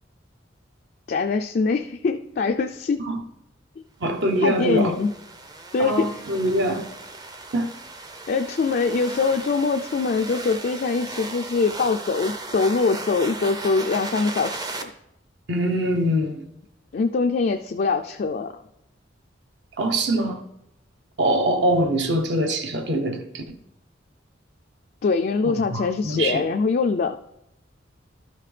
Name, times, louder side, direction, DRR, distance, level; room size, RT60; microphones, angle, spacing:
voice 1, 1.1-3.1 4.4-5.1 5.7-6.1 8.3-14.9 16.9-18.5 25.0-27.2, left 4 dB, 50° left, 4 dB, 0.3 m, -23 dB
voice 2, 4.0-4.9 5.8-6.8 7.5-7.7 15.5-16.4 19.8-20.4 21.2-23.6 25.4-26.4, right 1 dB, 65° right, 4 dB, 0.9 m, -23 dB
sound 1, 4.4-14.8, right 2 dB, 20° right, 0.5 m, -36 dB
12.5 x 5.7 x 3.3 m, 0.84 s
head